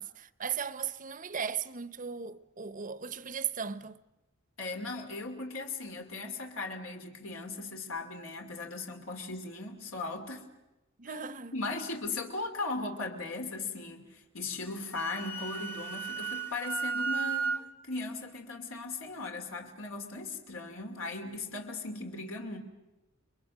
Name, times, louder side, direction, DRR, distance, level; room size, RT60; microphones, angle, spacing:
voice 1, 0.0-4.0 11.0-11.5, right 7 dB, 40° right, 0.8 m, -37 dB
voice 2, 4.6-10.4 11.1-11.2 11.5-22.6, left 3 dB, 80° left, 2.9 m, -38 dB
Wind instrument woodwind instrument, 14.7-17.6, right 5 dB, 10° left, 1.0 m, -34 dB
29.5 x 22.5 x 6.3 m
head